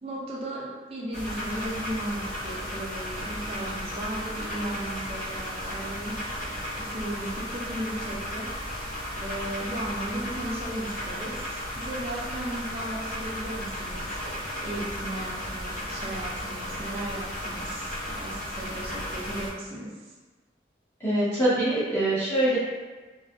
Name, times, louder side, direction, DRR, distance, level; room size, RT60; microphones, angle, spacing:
voice 1, 0.0-8.7 9.2-20.1, right 1 dB, 35° right, -4 dB, 0.5 m, -36 dB
sound 1, 1.1-19.5, equal, 45° left, 0.9 m, -34 dB
voice 2, 21.0-22.6, right 1 dB, 15° left, -11 dB, 0.8 m, -24 dB
2.6 x 2.4 x 2.3 m, 1.3 s
head